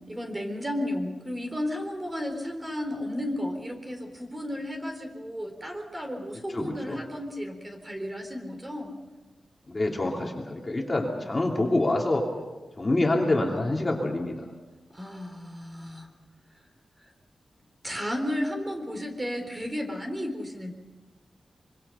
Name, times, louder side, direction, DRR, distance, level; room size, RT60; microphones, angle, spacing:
voice 1, 0.1-9.0 14.9-16.1 17.8-20.7, left 1 dB, 20° right, 4 dB, 3.9 m, -33 dB
voice 2, 6.5-7.0 9.7-12.2 12.8-14.3, left 2 dB, 20° left, -1 dB, 2.9 m, -26 dB
25.5 x 24.5 x 5.7 m, 1.2 s
wide cardioid pair, 140°, 0 cm